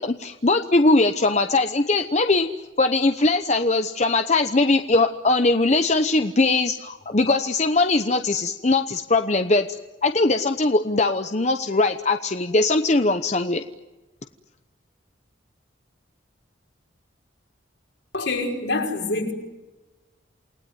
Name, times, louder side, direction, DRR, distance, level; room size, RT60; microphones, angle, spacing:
voice 1, 0.0-2.5 2.8-9.7 10.0-13.6, left 2 dB, 35° left, 0.9 m, -21 dB
voice 2, 18.1-19.3, left 2 dB, 70° left, 5.4 m, -25 dB
28.5 x 19.5 x 9.4 m
head